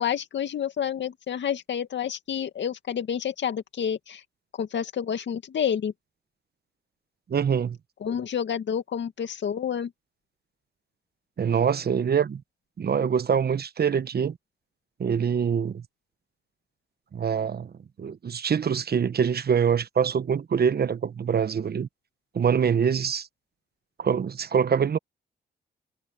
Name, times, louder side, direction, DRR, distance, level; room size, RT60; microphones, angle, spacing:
voice 1, 0.0-4.2 4.6-5.9 8.0-9.9, left 8 dB, 65° left, 2.3 m, -29 dB
voice 2, 7.3-7.8 11.4-12.4 12.8-14.4 15.0-15.8 17.1-17.7 18.0-21.9 22.3-23.3 24.0-25.0, right 7 dB, 55° right, 1.2 m, -24 dB
supercardioid pair, 50°, 20 cm